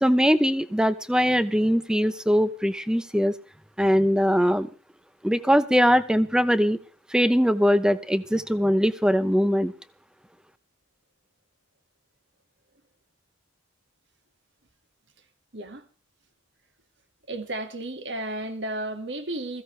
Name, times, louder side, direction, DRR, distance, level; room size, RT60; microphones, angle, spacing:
voice 1, 0.0-3.3 3.8-4.7 5.2-6.8 7.1-9.7, equal, 5° right, 0.8 m, -21 dB
voice 2, 15.5-15.8 17.3-19.6, right 1 dB, 60° right, 2.0 m, -33 dB
21.0 x 15.5 x 3.3 m
head